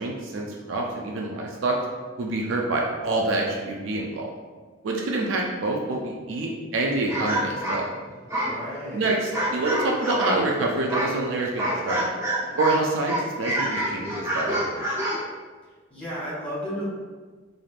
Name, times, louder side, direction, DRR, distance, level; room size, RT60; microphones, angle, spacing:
voice 1, 0.0-1.8 2.2-4.3 4.8-7.8 8.9-12.1 12.6-14.6, right 2 dB, 80° right, 0 dB, 0.4 m, -26 dB
sound 1, 7.1-10.5 10.9-12.8 13.1-15.3, right 1 dB, 15° right, 0.6 m, -27 dB
voice 2, 8.3-9.1 15.9-16.9, equal, 5° left, -8 dB, 1.1 m, -33 dB
3.2 x 2.5 x 2.4 m, 1.4 s
head